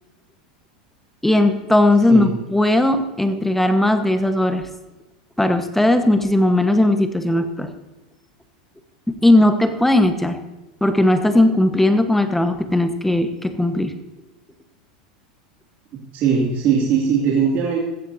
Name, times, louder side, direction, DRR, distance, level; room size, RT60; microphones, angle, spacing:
voice 1, 1.2-4.7 5.4-7.7 9.1-10.4 10.8-13.9, left 1 dB, 5° left, 7 dB, 1.3 m, -17 dB
voice 2, 15.9-17.8, right 6 dB, 45° right, -3 dB, 2.5 m, -20 dB
15.0 x 15.0 x 2.8 m, 1.1 s
hypercardioid pair, 100°, 4 cm